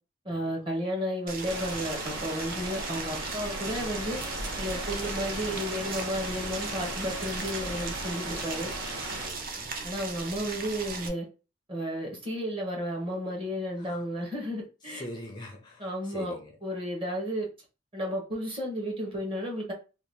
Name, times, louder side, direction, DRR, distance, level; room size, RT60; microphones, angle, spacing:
voice 1, 0.2-4.2 4.6-8.7 9.8-11.3 11.7-15.0 15.8-16.3 16.6-17.5 17.9-19.7, equal, 25° right, 1.0 m, -33 dB
Boiling, 1.3-11.1, right 4 dB, 45° right, 0.6 m, -38 dB
sound 1, 1.4-9.3, right 1 dB, 70° right, 0.9 m, -37 dB
voice 2, 9.2-9.7 13.8-14.0 14.9-16.6, equal, 25° left, 0.5 m, -43 dB
2.7 x 2.3 x 3.4 m
head